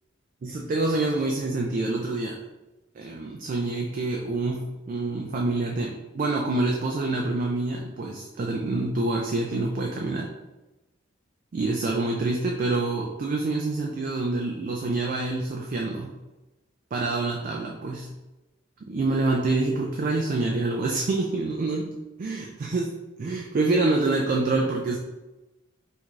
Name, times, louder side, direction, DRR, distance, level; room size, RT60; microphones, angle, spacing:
voice 1, 0.4-2.4 2.9-10.3 11.5-16.2 16.9-18.1 18.8-21.9 22.2-25.0, right 2 dB, 45° right, 0 dB, 0.3 m, -26 dB
4.5 x 2.6 x 2.4 m, 1.1 s
head